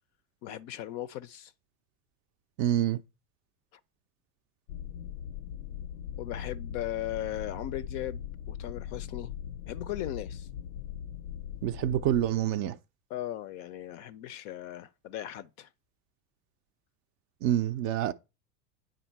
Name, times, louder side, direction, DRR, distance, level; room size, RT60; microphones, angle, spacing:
voice 1, 0.4-1.5 6.2-8.2 8.5-9.3 9.7-10.5 13.1-15.7, left 13 dB, 40° left, 0.4 m, -37 dB
voice 2, 2.6-3.0 11.6-12.8 17.4-18.1, right 11 dB, 40° right, 0.4 m, -27 dB
sound 1, 4.7-12.3, left 9 dB, 80° left, 0.6 m, -40 dB
9.3 x 3.7 x 4.5 m
hypercardioid pair, 85°, 48 cm